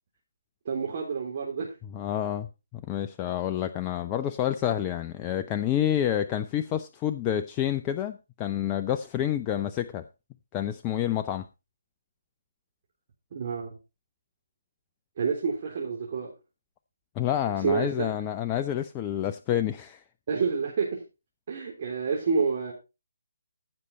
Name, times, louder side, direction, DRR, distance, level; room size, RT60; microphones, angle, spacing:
voice 1, 0.7-1.7 13.3-13.7 15.2-16.3 17.6-18.1 20.3-21.0 21.5-22.7, right 5 dB, 40° right, 3.7 m, -28 dB
voice 2, 1.9-10.0 10.5-11.5 17.2-20.0, left 11 dB, 20° left, 0.5 m, -28 dB
15.0 x 6.7 x 4.2 m
figure-of-eight pair, 145°, 0 cm